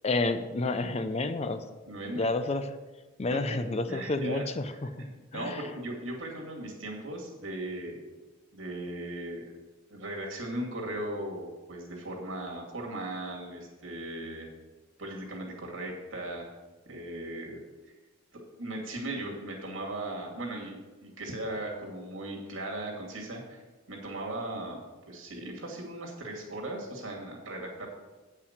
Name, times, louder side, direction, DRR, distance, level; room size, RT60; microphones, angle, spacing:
voice 1, 0.0-1.6 2.2-2.7 3.2-5.1 5.3-5.7, left 2 dB, 30° left, 10 dB, 0.5 m, -30 dB
voice 2, 1.9-2.3 3.3-3.4 3.9-4.4 4.7-5.1 5.3-8.1 8.5-9.5 9.9-14.5 15.0-16.5 16.9-17.6 18.6-23.6 23.9-27.9, right 1 dB, 75° right, -1 dB, 2.4 m, -38 dB
8.9 x 5.7 x 6.6 m, 1.2 s
head